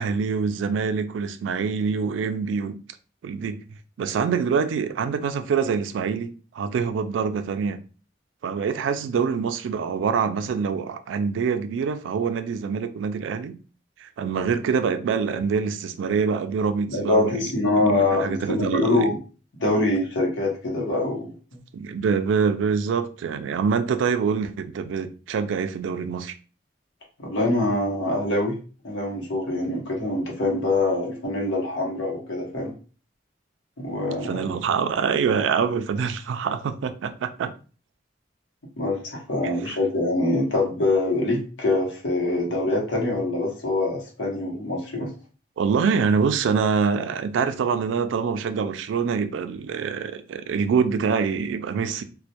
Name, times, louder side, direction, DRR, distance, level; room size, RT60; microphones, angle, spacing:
voice 1, 0.0-2.8 3.2-3.6 4.0-7.8 8.4-13.6 14.0-17.4 17.9-19.0 21.7-26.3 34.2-37.5 39.4-39.8 45.6-52.0, right 6 dB, 90° right, 0.3 m, -25 dB
voice 2, 16.9-19.2 19.6-21.3 27.2-28.6 28.8-32.7 33.8-34.5 38.8-45.1, left 2 dB, 85° left, 0.8 m, -24 dB
2.1 x 2.1 x 2.7 m
head